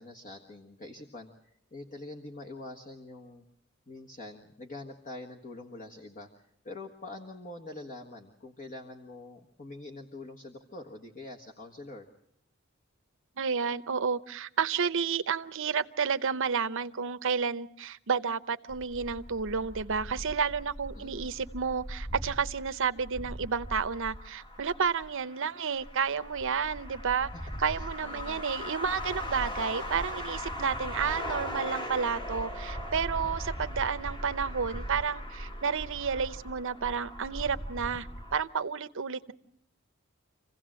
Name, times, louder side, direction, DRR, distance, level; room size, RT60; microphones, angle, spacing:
voice 1, 0.0-3.4 3.9-6.3 6.6-12.1 20.9-21.3 27.3-27.4 27.8-28.4, left 2 dB, 40° left, 1 dB, 1.6 m, -45 dB
voice 2, 13.4-27.3 27.6-39.3, right 6 dB, 65° right, 12 dB, 0.8 m, -31 dB
sound 1, 18.7-38.4, equal, 25° left, 1.6 m, -39 dB
27.0 x 16.5 x 7.6 m, 0.75 s
head